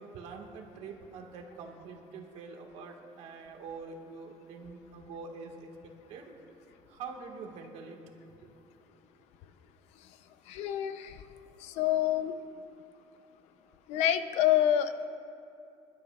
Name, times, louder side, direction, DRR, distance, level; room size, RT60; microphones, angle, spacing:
voice 1, 0.0-5.7 6.1-6.3 6.9-8.0 8.3-8.5, right 4 dB, 80° right, 2 dB, 1.7 m, -45 dB
voice 2, 10.5-11.2 11.6-12.3 13.9-15.1, left 11 dB, 85° left, 10 dB, 0.7 m, -27 dB
26.0 x 12.0 x 2.4 m, 2.6 s
cardioid pair, 160°, 11 cm